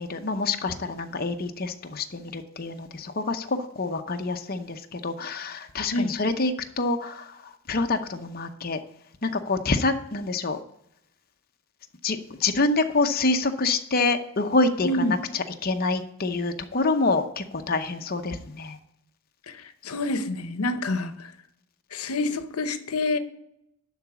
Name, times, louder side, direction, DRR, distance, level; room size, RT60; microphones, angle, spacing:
voice 1, 0.0-8.8 9.2-10.6 12.0-18.8, left 3 dB, 40° left, 0.8 m, -27 dB
voice 2, 14.8-15.1 19.5-21.3 21.9-23.2, left 2 dB, 80° left, 0.8 m, -27 dB
11.5 x 4.1 x 7.0 m
head